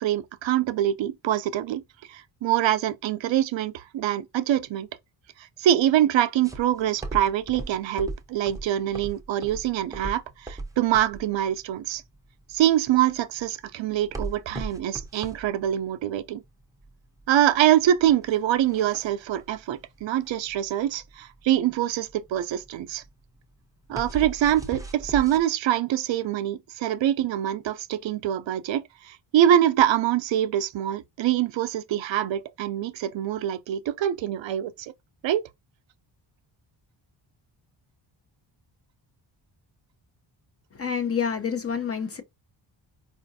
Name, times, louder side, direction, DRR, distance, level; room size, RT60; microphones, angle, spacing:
voice 1, 0.0-1.8 2.1-4.9 5.4-12.0 12.5-16.4 17.3-23.0 23.9-34.9 35.2-35.4, right 11 dB, 70° right, 0.5 m, -24 dB
sound 1, 6.4-25.4, right 2 dB, 5° right, 0.6 m, -38 dB
voice 2, 40.7-42.2, left 7 dB, 30° left, 0.7 m, -28 dB
4.8 x 2.4 x 2.6 m
wide cardioid pair, 120°, 46 cm